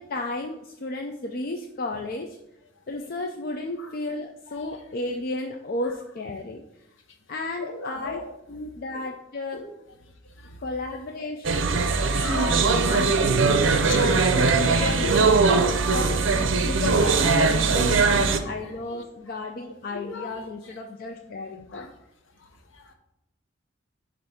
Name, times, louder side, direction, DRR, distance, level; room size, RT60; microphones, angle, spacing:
voice 1, 0.0-2.3 2.9-6.6 7.3-8.2 8.5-9.6 10.6-11.7 12.2-12.4 12.9-13.5 13.9-16.2 16.6-21.9, left 2 dB, 45° left, 3 dB, 0.4 m, -33 dB
voice 2, 4.5-4.8 5.8-6.0 7.1-7.2 7.6-8.6 8.9-9.1 9.5-10.6 11.1-11.3 11.7-13.1 13.4-16.2 16.5-18.0 18.3-19.1 19.7-20.8 21.7-22.0 22.3-22.9, left 4 dB, 65° left, 4 dB, 0.9 m, -38 dB
sound 1, 11.4-18.4, right 4 dB, 65° right, 0.5 m, -21 dB
7.7 x 2.6 x 5.6 m, 0.86 s
head